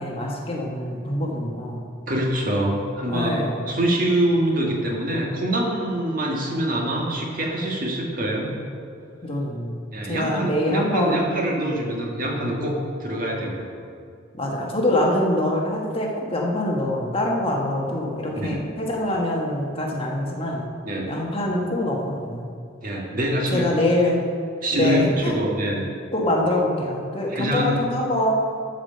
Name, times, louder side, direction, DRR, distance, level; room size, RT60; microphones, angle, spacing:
voice 1, 0.0-1.8 3.1-3.6 9.2-9.8 10.1-11.3 14.3-20.6 21.1-22.5 23.5-24.2 24.7-25.3 26.1-28.3, left 1 dB, 30° left, -1 dB, 1.4 m, -24 dB
voice 2, 2.1-8.6 9.9-13.7 18.3-18.6 20.8-21.1 22.8-23.8 24.6-25.8 27.3-27.8, right 1 dB, 45° right, -1 dB, 1.7 m, -25 dB
12.5 x 5.0 x 6.7 m, 2.4 s
head